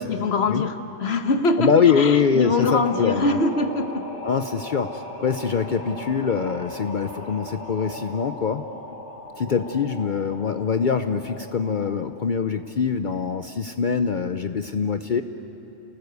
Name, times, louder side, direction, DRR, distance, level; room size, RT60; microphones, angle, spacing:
voice 1, 0.1-4.0 9.5-9.6, left 3 dB, 65° left, 7 dB, 1.4 m, -23 dB
voice 2, 1.6-3.4 4.2-8.6 9.3-15.2, left 6 dB, 50° left, 9 dB, 0.7 m, -23 dB
sound 1, 2.4-12.1, left 1 dB, 85° left, 2.7 m, -38 dB
30.0 x 18.5 x 8.1 m, 2.9 s
omnidirectional pair, 1.1 m